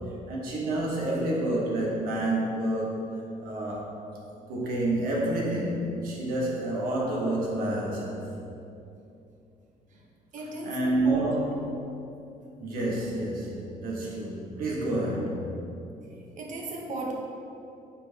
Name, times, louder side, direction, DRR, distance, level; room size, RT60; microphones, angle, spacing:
voice 1, 0.3-3.8 4.5-8.3 10.6-11.7 12.6-15.5, right 1 dB, 75° right, -4 dB, 1.5 m, -29 dB
voice 2, 10.3-11.2 16.4-17.1, right 2 dB, 55° right, -1 dB, 1.1 m, -35 dB
8.5 x 4.6 x 2.9 m, 2.7 s
cardioid pair, 120°, 15 cm